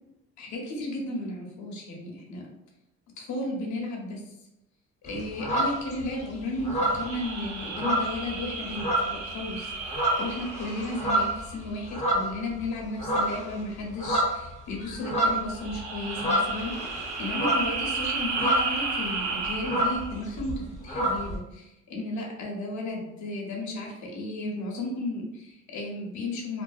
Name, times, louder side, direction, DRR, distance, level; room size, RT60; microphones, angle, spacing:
voice 1, 0.4-2.4 3.2-4.2 5.0-26.6, left 2 dB, 70° left, -1 dB, 0.8 m, -34 dB
sound 1, 5.1-6.2 6.6-8.5 8.7-9.3 9.7-12.6 13.0-13.6 13.8-18.9 19.2-19.3 19.5-21.4, right 1 dB, 20° left, 0.9 m, -28 dB
sound 2, 6.9-11.7 15.5-20.2, right 4 dB, 60° right, 0.6 m, -34 dB
2.6 x 2.1 x 2.3 m, 0.87 s
cardioid pair, 90°, 30 cm